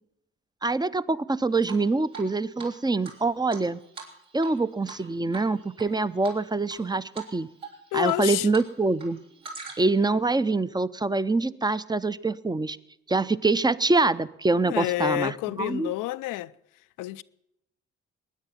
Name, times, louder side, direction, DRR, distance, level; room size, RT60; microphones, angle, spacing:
voice 1, 0.6-3.8 4.3-7.5 7.9-9.2 9.8-12.8 13.1-15.9, right 3 dB, 10° right, 0.6 m, -25 dB
Drip, 1.6-2.3 2.6-2.7 3.0-4.6 4.8-5.0 5.3-5.9 6.2-6.8 7.1-7.3 7.6-8.7 8.9-10.0, right 4 dB, 75° right, 3.8 m, -41 dB
voice 2, 7.9-8.5 14.6-16.5 17.0-17.2, left 17 dB, 65° left, 0.5 m, -28 dB
21.0 x 9.7 x 5.8 m
hypercardioid pair, 40°, 34 cm